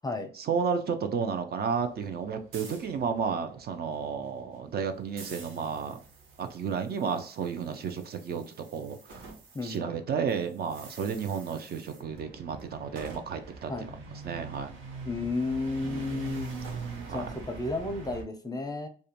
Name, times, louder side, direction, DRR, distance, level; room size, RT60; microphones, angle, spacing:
voice 1, 0.3-6.0 6.4-9.3 9.6-13.9 14.2-14.7 15.8-16.3 17.1-17.3, right 6 dB, 55° right, 8 dB, 0.4 m, -32 dB
sound 1, 1.7-9.8 10.0-18.2, right 4 dB, 90° right, 0.7 m, -44 dB
voice 2, 9.5-10.0 13.7-13.9 15.0-16.5 17.1-18.9, left 2 dB, 20° left, 6 dB, 0.5 m, -32 dB
2.4 x 2.1 x 2.8 m, 0.43 s
cardioid pair, 90°, 20 cm